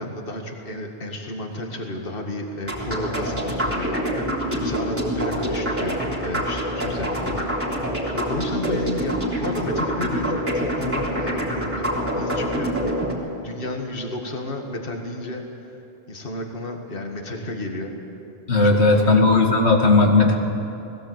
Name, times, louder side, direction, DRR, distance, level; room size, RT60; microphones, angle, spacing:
voice 1, 0.0-7.5 8.1-12.9 13.4-15.8 16.1-17.9 18.6-19.2, left 1 dB, 55° left, 2 dB, 2.1 m, -32 dB
sound 1, 2.6-13.1, equal, 10° right, 3.6 m, -26 dB
voice 2, 18.5-20.3, left 3 dB, 80° left, 2 dB, 2.5 m, -16 dB
21.0 x 16.5 x 8.2 m, 2.9 s
omnidirectional pair, 1.1 m